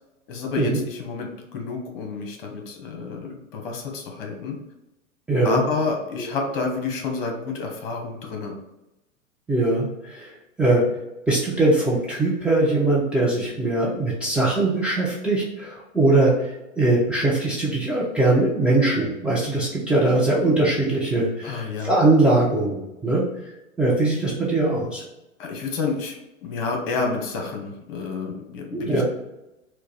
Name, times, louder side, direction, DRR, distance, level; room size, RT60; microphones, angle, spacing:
voice 1, 0.3-4.6 5.4-8.5 21.4-22.0 25.4-26.1 26.4-29.0, left 4 dB, 45° left, 2 dB, 1.1 m, -29 dB
voice 2, 5.3-5.6 9.5-10.3 10.6-10.8 11.3-23.2 23.8-25.0 28.7-29.0, right 2 dB, 5° right, -7 dB, 0.5 m, -21 dB
4.4 x 2.2 x 4.3 m, 0.93 s
figure-of-eight pair, 100°, 39 cm